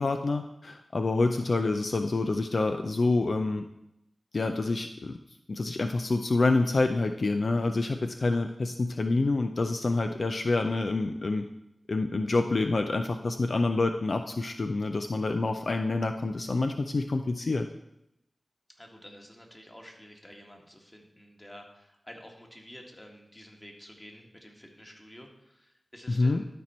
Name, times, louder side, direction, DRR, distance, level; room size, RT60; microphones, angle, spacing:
voice 1, 0.0-3.6 4.3-5.2 5.5-11.5 11.9-17.7 26.1-26.4, left 3 dB, 60° left, 6 dB, 0.5 m, -27 dB
voice 2, 18.7-26.5, equal, 15° left, 1 dB, 1.8 m, -50 dB
12.5 x 4.4 x 4.3 m, 0.84 s
cardioid pair, 55°, 0 cm